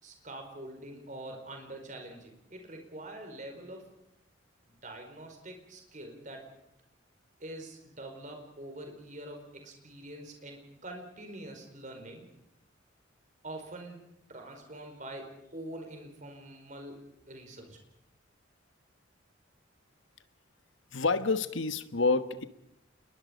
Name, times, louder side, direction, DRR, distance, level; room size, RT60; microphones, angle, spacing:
voice 1, 0.0-3.9 4.7-6.4 7.4-12.2 13.4-14.0 14.3-17.0 17.3-17.8, right 1 dB, 40° right, 4 dB, 4.8 m, -45 dB
voice 2, 20.9-22.5, left 3 dB, 75° left, 11 dB, 1.3 m, -28 dB
28.5 x 21.5 x 5.3 m, 0.81 s
head